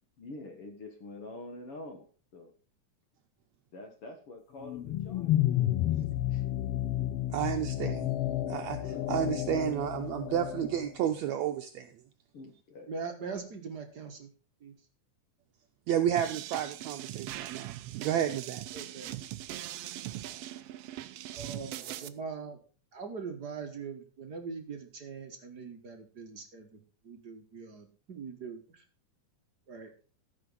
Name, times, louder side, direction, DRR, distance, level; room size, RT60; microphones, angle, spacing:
voice 1, 0.2-2.1 2.3-2.5 3.7-5.3 5.9-6.4 8.0-10.0 12.3-12.9, left 2 dB, 50° left, 4 dB, 2.2 m, -47 dB
sound 1, 4.6-10.9, left 13 dB, 90° left, 1.3 m, -31 dB
voice 2, 7.3-8.1 8.5-8.8 9.1-11.9 15.9-18.6, right 10 dB, 75° right, 6 dB, 1.8 m, -31 dB
voice 3, 12.9-14.3 14.6-14.7 18.7-19.1 20.3-20.4 21.3-22.6 22.9-28.8 29.7-29.9, right 5 dB, 50° right, 5 dB, 1.3 m, -42 dB
sound 2, 16.2-22.1, right 13 dB, 90° right, 1.3 m, -41 dB
14.5 x 6.0 x 5.4 m, 0.38 s
omnidirectional pair, 3.6 m